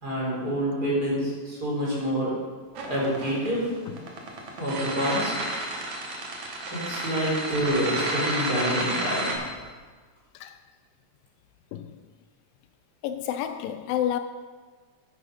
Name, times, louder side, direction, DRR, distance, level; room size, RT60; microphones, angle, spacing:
voice 1, 0.0-2.3 2.9-3.6 4.6-5.3 6.7-9.4, equal, 25° right, 4.5 m, -27 dB
sound 1, 2.8-9.3, right 2 dB, 60° right, 2.6 m, -31 dB
voice 2, 13.0-14.2, left 10 dB, 85° left, 2.2 m, -30 dB
10.0 x 9.9 x 5.1 m
omnidirectional pair, 4.1 m